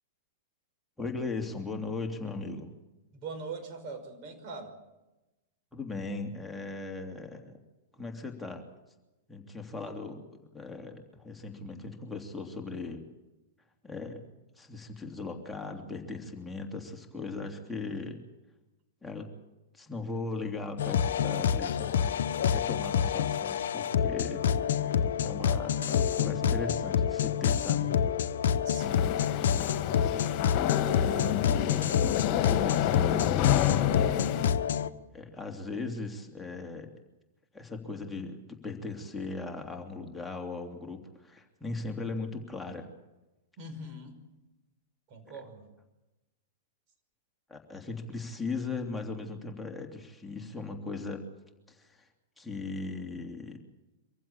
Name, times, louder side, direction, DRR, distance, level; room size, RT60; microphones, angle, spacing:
voice 1, 1.0-2.7 5.7-7.6 7.9-8.6 9.3-10.2 10.5-13.0 13.8-14.3 14.6-18.2 19.0-19.3 19.7-22.1 22.5-27.9 30.7-31.8 32.2-34.1 35.1-36.9 37.5-42.9 45.2-45.3 47.5-51.2 51.7-52.1 52.4-53.6, left 3 dB, 5° left, 1 dB, 3.0 m, -38 dB
voice 2, 3.1-4.8 9.8-10.0 28.6-29.4 43.6-44.2 45.1-45.6, right 3 dB, 45° right, 7 dB, 5.7 m, -42 dB
sound 1, 20.8-34.9, left 8 dB, 65° left, 1.0 m, -28 dB
sound 2, 28.8-34.5, left 11 dB, 40° left, 2.2 m, -29 dB
25.0 x 15.5 x 8.7 m, 1.0 s
figure-of-eight pair, 105°, 0 cm